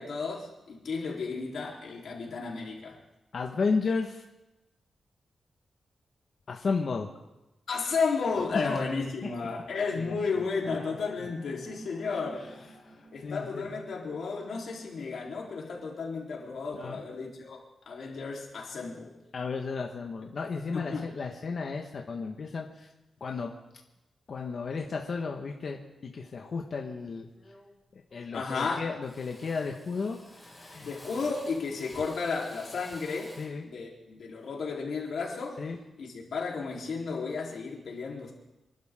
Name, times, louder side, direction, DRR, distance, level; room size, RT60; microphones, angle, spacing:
voice 1, 0.0-3.0 7.7-12.5 13.1-17.6 17.9-19.1 20.7-21.0 28.3-28.9 30.8-33.4 33.6-35.6 36.0-38.3, left 4 dB, 70° left, -2 dB, 4.0 m, -33 dB
voice 2, 3.3-4.2 6.5-7.1 8.7-8.8 9.9-10.1 10.7-10.8 12.8-13.8 16.7-17.0 19.3-22.9 23.2-23.5 24.3-27.3 28.1-30.9 33.4-33.6 35.6-35.8, left 4 dB, 50° left, 1 dB, 1.6 m, -33 dB
sound 1, 10.6-15.2, right 2 dB, 55° right, 2.4 m, -53 dB
Drill, 27.3-27.8 28.1-28.7 29.0-33.6, left 1 dB, ahead, 4.7 m, -51 dB
27.5 x 12.0 x 3.9 m, 0.96 s
wide cardioid pair, 130°, 0 cm